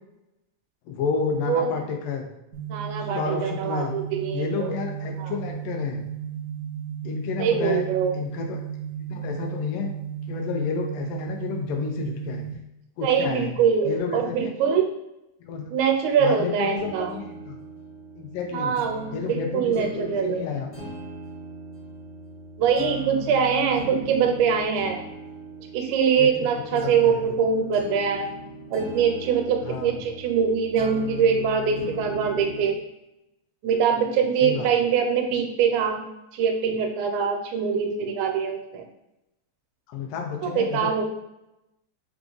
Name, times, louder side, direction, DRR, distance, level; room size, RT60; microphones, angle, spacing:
voice 1, 0.9-2.3 3.0-3.9 4.3-6.1 7.0-7.8 8.1-8.6 9.1-9.9 10.3-12.4 13.0-13.5 13.8-14.7 15.4-15.7 16.2-17.6 18.2-18.8 19.1-20.7 26.2-26.5 26.8-27.2 29.6-30.0 34.4-34.7 39.9-40.9, left 6 dB, 85° left, 2 dB, 1.2 m, -30 dB
voice 2, 1.5-1.8 2.7-4.8 5.2-5.3 7.4-8.1 13.0-14.9 15.7-17.1 18.5-20.4 22.6-25.0 25.7-28.3 28.7-32.8 33.6-36.1 36.3-38.8 40.4-41.0, right 6 dB, 85° right, 4 dB, 2.0 m, -23 dB
sound 1, 2.5-12.5, right 9 dB, 65° right, 1.0 m, -34 dB
sound 2, 16.8-32.8, right 1 dB, 60° left, 0.5 m, -39 dB
4.8 x 2.4 x 3.8 m, 0.91 s
omnidirectional pair, 3.3 m